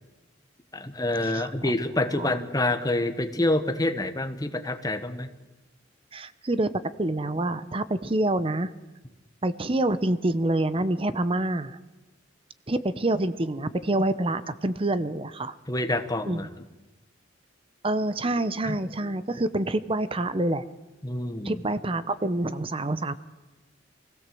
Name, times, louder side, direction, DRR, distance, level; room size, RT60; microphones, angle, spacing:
voice 1, 0.7-5.3 15.7-16.5 18.6-18.8 21.0-21.6, left 1 dB, 20° left, 9 dB, 1.2 m, -27 dB
voice 2, 1.3-1.7 2.1-2.3 6.1-6.7 7.0-8.7 9.4-11.8 12.7-15.6 16.3-16.5 17.8-20.6 21.4-23.1, right 1 dB, 30° right, 14 dB, 0.7 m, -27 dB
23.0 x 16.5 x 7.7 m, 1.1 s
head